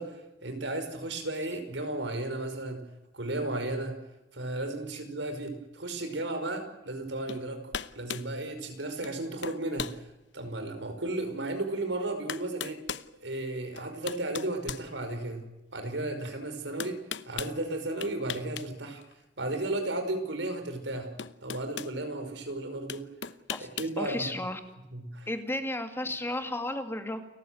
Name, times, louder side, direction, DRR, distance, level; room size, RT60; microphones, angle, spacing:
voice 1, 0.0-2.8 3.1-4.0 4.3-7.6 7.9-12.8 13.2-15.4 15.7-19.0 19.4-21.1 21.4-23.0 23.6-24.3 24.9-25.3, right 2 dB, 90° right, 7 dB, 5.5 m, -34 dB
sound 1, 7.3-7.4 7.7-8.3 9.0-9.2 9.4-10.0 10.6-10.7 11.8-11.9 12.3-13.1 13.8-15.4 16.8-17.6 18.0-18.7 19.0-19.1 20.5-20.6 21.2-21.9 22.9-24.0, left 7 dB, 75° left, 0.9 m, -38 dB
voice 2, 24.0-24.6 25.3-27.2, left 1 dB, 15° left, 6 dB, 2.4 m, -33 dB
29.5 x 15.5 x 9.4 m, 0.97 s
head